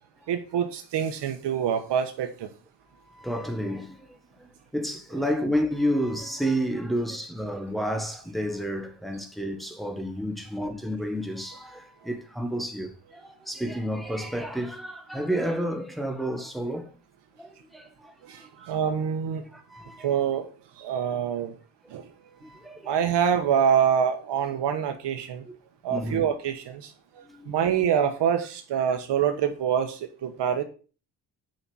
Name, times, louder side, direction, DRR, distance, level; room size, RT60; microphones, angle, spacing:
voice 1, 0.3-2.5 18.2-19.5 20.0-20.5 20.8-21.6 21.9-22.1 22.8-25.4 25.8-30.6, right 8 dB, 75° right, 1.3 m, -26 dB
voice 2, 3.1-16.9 17.4-18.7 19.5-20.1 22.4-23.0 25.5-25.6 25.9-26.3 27.2-27.8 28.9-29.0, equal, ahead, 1.5 m, -31 dB
6.6 x 5.6 x 6.3 m
cardioid pair, 125°, 42 cm